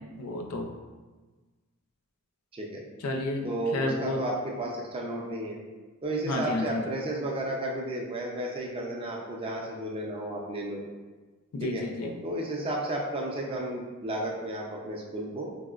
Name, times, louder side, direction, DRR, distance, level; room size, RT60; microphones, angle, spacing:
voice 1, 0.1-0.7 3.0-4.2 6.3-6.8 11.5-12.2, left 2 dB, 80° left, 3 dB, 0.4 m, -31 dB
voice 2, 3.4-5.6 6.0-10.8 11.6-11.9 12.2-15.5, right 1 dB, 25° right, -1 dB, 0.4 m, -33 dB
4.3 x 2.0 x 2.3 m, 1.3 s
head